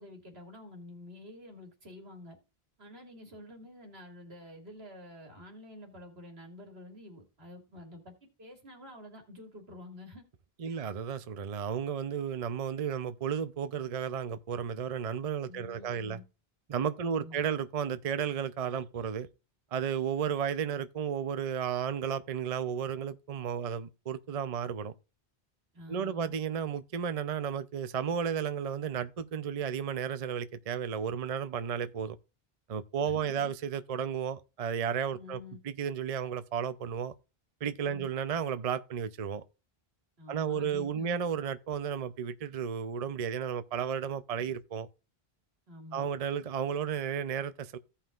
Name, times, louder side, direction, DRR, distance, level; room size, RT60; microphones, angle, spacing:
voice 1, 0.0-2.4 2.8-10.2 10.6-10.9 15.5-16.2 17.0-17.4 25.7-26.3 33.0-33.5 35.1-35.6 37.9-38.1 40.2-41.2 45.7-46.1, left 1 dB, 80° right, 2.4 m, -48 dB
voice 2, 10.6-16.2 16.7-19.3 19.7-24.9 25.9-32.2 32.7-37.1 37.6-39.4 40.3-44.9 45.9-47.8, right 7 dB, 45° right, 0.6 m, -33 dB
16.0 x 5.7 x 2.4 m
omnidirectional pair, 1.1 m